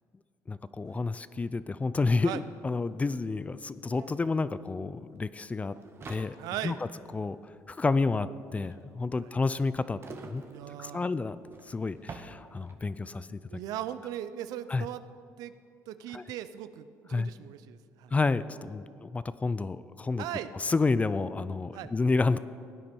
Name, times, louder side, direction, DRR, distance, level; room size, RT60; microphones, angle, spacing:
voice 1, 0.5-5.7 6.1-6.4 6.6-6.8 7.1-7.4 7.7-10.4 10.8-11.4 11.7-13.4 14.7-14.8 16.1-16.2 17.1-17.3 18.1-20.3 20.6-22.4, left 3 dB, 20° left, 15 dB, 0.4 m, -30 dB
sound 1, 2.2-2.3 2.5-13.0, right 4 dB, 40° right, 1.2 m, -50 dB
voice 2, 6.4-6.8 9.2-9.3 10.5-11.1 13.5-15.0 15.4-15.5 15.9-18.1 20.2-20.5 21.7-21.9, right 12 dB, 75° right, 13 dB, 0.6 m, -38 dB
16.5 x 9.8 x 4.5 m, 2.4 s
supercardioid pair, 85°, 6 cm